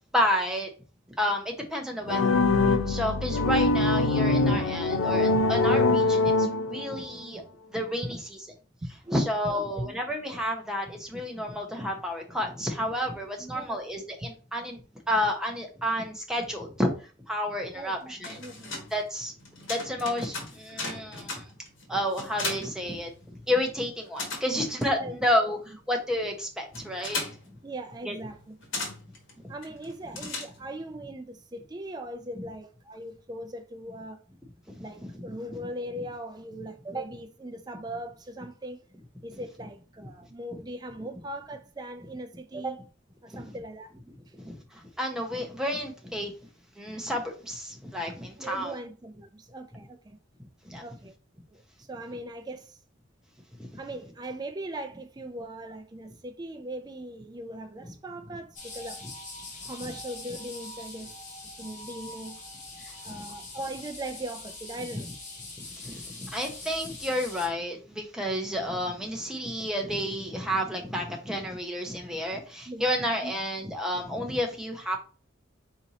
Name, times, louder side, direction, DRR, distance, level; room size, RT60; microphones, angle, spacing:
voice 1, 0.1-0.7 1.2-7.4 7.7-8.4 9.1-14.8 15.1-18.4 18.9-19.3 19.7-21.5 21.9-27.2 28.0-28.2 35.0-35.7 43.3-43.4 44.3-46.3 46.8-48.7 50.6-50.8 53.6-53.7 62.8-63.2 65.8-75.0, equal, 5° right, 0.8 m, -31 dB
sound 1, 2.1-7.0, left 3 dB, 85° left, 0.5 m, -23 dB
voice 2, 8.8-9.9 13.4-13.8 17.7-18.7 25.0-25.2 27.6-28.4 29.5-34.2 34.8-38.8 39.2-42.8 43.2-43.9 48.4-50.2 50.8-51.1 51.5-51.6 51.9-52.8 53.8-59.0 59.6-61.1 61.6-62.4 63.0-65.1 72.7-72.8 73.2-73.3, right 1 dB, 20° right, 0.4 m, -39 dB
sound 2, 18.0-23.6 23.8-30.9, left 3 dB, 65° left, 1.4 m, -38 dB
sound 3, 58.6-67.5, left 2 dB, 40° left, 1.6 m, -43 dB
4.3 x 2.9 x 4.0 m
head